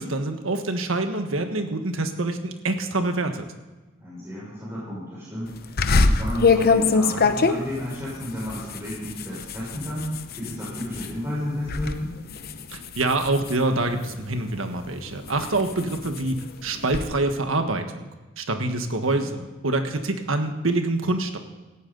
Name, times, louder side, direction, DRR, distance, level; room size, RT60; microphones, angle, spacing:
voice 1, 0.0-3.5 12.7-18.1 18.4-21.4, right 2 dB, 90° right, 6 dB, 1.5 m, -26 dB
voice 2, 4.0-12.2 19.2-19.3, left 1 dB, 15° right, -9 dB, 6.0 m, -32 dB
sound 1, 5.8-11.1 11.5-11.9 12.3-14.3 14.9-17.1, left 4 dB, 50° left, 0.8 m, -24 dB
18.0 x 14.5 x 4.0 m, 1.2 s
head